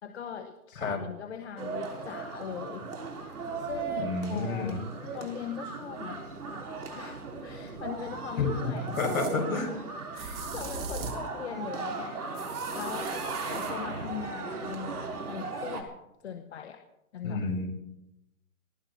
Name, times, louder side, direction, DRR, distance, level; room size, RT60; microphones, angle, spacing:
voice 1, 0.0-2.9 3.5-4.8 5.1-6.2 6.9-9.8 10.1-13.2 13.5-15.9 16.2-16.8 17.1-17.4, left 8 dB, 50° left, 7 dB, 1.3 m, -40 dB
sound 1, 1.6-15.8, right 4 dB, 80° right, 5.5 m, -37 dB
voice 2, 4.0-4.8 8.4-8.7 9.0-9.7 17.2-17.7, left 4 dB, 65° left, 2 dB, 6.5 m, -30 dB
sound 2, 7.8-7.9 8.9-9.4 10.1-11.3 12.3-13.7, right 5 dB, 40° right, 3.6 m, -41 dB
20.5 x 15.5 x 4.3 m, 0.89 s
hypercardioid pair, 160°, 44 cm